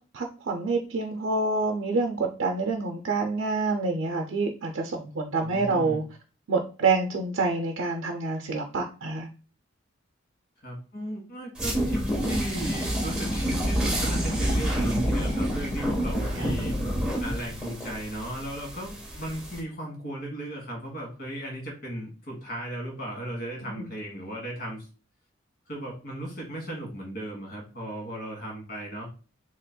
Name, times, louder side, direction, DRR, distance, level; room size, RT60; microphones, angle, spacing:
voice 1, 0.1-6.0 6.5-9.3 16.4-16.5 23.6-23.9, right 3 dB, 75° right, 2 dB, 0.5 m, -27 dB
voice 2, 5.4-6.0 10.6-16.8 17.2-24.9 25.7-29.1, right 1 dB, 55° left, -1 dB, 1.5 m, -36 dB
sound 1, 11.6-19.6, equal, 5° right, 1.0 m, -28 dB
4.1 x 2.9 x 2.2 m, 0.36 s
head